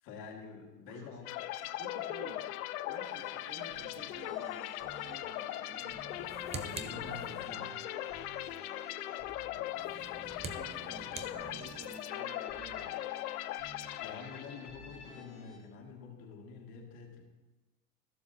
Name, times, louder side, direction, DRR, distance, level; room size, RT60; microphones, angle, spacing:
voice 1, 0.0-1.5 6.5-7.8 14.0-17.2, left 5 dB, 50° left, 0 dB, 2.3 m, -47 dB
sound 1, 1.3-14.8, left 15 dB, 70° left, 0.6 m, -40 dB
voice 2, 1.6-2.5 2.9-6.1 6.6-7.7 10.5-12.9, right 3 dB, 50° right, 0 dB, 2.5 m, -51 dB
sound 2, 3.0-15.6, left 2 dB, 15° left, 3.1 m, -52 dB
sound 3, 6.1-7.7 9.7-12.0, right 4 dB, 15° right, 0.5 m, -46 dB
14.5 x 6.9 x 2.7 m, 1.2 s
hypercardioid pair, 100°, 46 cm